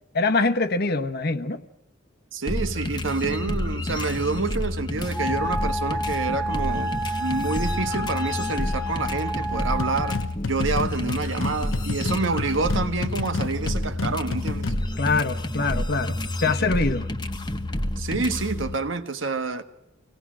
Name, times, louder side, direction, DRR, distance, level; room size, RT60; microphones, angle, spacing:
voice 1, 0.1-1.6 15.0-17.1, left 3 dB, 55° left, 1.2 m, -24 dB
voice 2, 2.3-14.7 18.0-19.6, right 3 dB, 75° right, 1.4 m, -28 dB
sound 1, 2.5-18.8, left 1 dB, 20° left, 1.3 m, -29 dB
Wind instrument woodwind instrument, 5.1-10.3, right 1 dB, 5° left, 1.5 m, -30 dB
sound 2, 9.8-14.9, left 3 dB, 85° left, 0.9 m, -31 dB
25.5 x 18.0 x 6.2 m
head